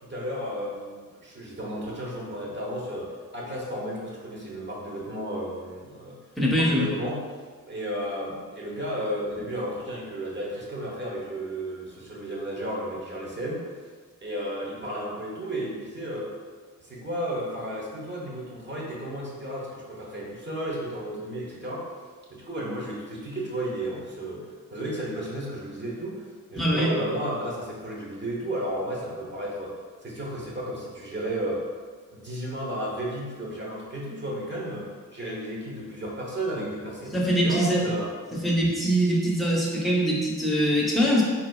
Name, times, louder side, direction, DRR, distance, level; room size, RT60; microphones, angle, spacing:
voice 1, 0.0-6.2 6.5-7.3 7.7-13.7 14.2-16.3 16.8-21.8 22.3-29.7 30.0-31.7 32.1-38.1, right 1 dB, 35° right, -4 dB, 0.9 m, -33 dB
voice 2, 6.4-6.9 26.6-26.9 37.1-37.9 38.4-41.2, equal, ahead, -5 dB, 0.8 m, -23 dB
4.0 x 2.5 x 2.3 m, 1.5 s
cardioid pair, 70°, 33 cm